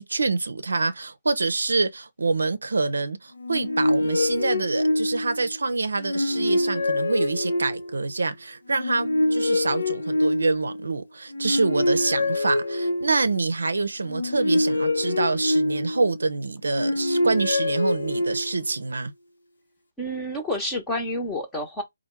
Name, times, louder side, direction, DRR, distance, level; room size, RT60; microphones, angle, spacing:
voice 1, 0.0-19.1, right 3 dB, 65° right, 0.6 m, -26 dB
sound 1, 3.4-5.5 6.0-8.0 8.7-10.8 11.3-13.3 14.0-16.2 16.7-18.7, left 1 dB, 70° left, 0.8 m, -25 dB
voice 2, 20.0-21.8, left 1 dB, 5° left, 0.9 m, -29 dB
4.4 x 2.2 x 4.3 m
figure-of-eight pair, 145°, 0 cm